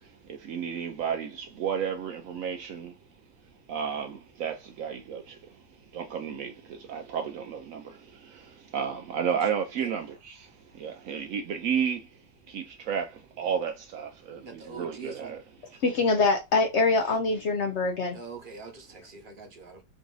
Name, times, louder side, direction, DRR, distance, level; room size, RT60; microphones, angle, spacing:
voice 1, 0.0-2.9 3.7-5.6 5.9-12.1 12.5-15.4, right 7 dB, 90° right, 0.7 m, -33 dB
voice 2, 14.4-15.4 18.1-19.8, right 5 dB, 40° right, 0.8 m, -43 dB
voice 3, 15.8-18.2, left 3 dB, 85° left, 0.6 m, -24 dB
3.9 x 2.6 x 3.7 m
omnidirectional pair, 2.0 m